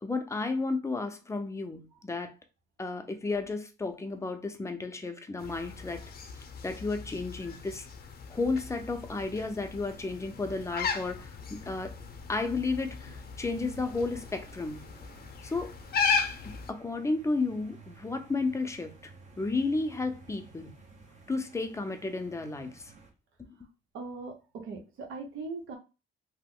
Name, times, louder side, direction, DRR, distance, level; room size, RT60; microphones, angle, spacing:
voice 1, 0.0-2.3 2.8-6.0 6.4-7.9 8.3-11.9 12.3-14.9 15.4-15.7 16.4-19.1 19.4-20.7 21.3-22.8 23.4-23.7, left 3 dB, 15° left, 0.6 m, -33 dB
sound 1, 5.4-16.7, left 5 dB, 50° left, 0.7 m, -36 dB
sound 2, 9.7-23.1, right 4 dB, 35° right, 0.9 m, -54 dB
voice 2, 23.9-25.8, right 3 dB, 80° right, 0.9 m, -40 dB
2.9 x 2.1 x 3.6 m
cardioid pair, 90°, 20 cm